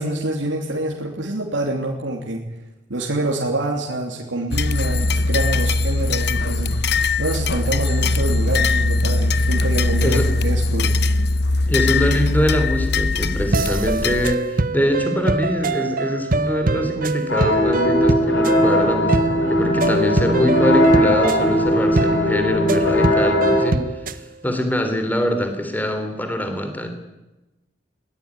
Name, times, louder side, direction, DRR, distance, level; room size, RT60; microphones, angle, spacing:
voice 1, 0.0-2.4 2.9-6.7 7.2-10.9, right 1 dB, 85° right, -1 dB, 3.0 m, -26 dB
sound 1, 4.5-14.3, left 3 dB, 60° left, 0.8 m, -20 dB
voice 2, 11.7-26.9, equal, 10° left, 6 dB, 3.3 m, -23 dB
sound 2, 13.5-24.2, right 2 dB, 50° right, 1.1 m, -24 dB
sound 3, 17.3-23.7, equal, 80° left, 5.4 m, -19 dB
21.5 x 18.0 x 9.8 m, 1.0 s
head